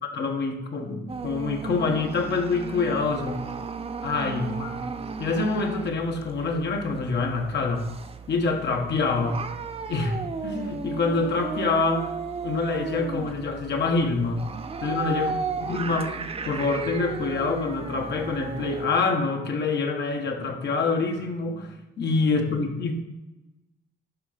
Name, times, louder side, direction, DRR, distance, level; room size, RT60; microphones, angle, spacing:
voice 1, 0.0-3.4 4.0-4.8 5.2-7.9 8.3-9.4 9.9-10.2 10.4-12.1 12.4-14.5 14.8-15.4 15.7-16.2 16.4-22.9, left 4 dB, 60° left, 3 dB, 1.5 m, -26 dB
sound 1, 1.1-18.9, right 4 dB, 30° right, 0.7 m, -35 dB
11.5 x 3.9 x 5.1 m, 1.0 s
cardioid pair, 90°, 20 cm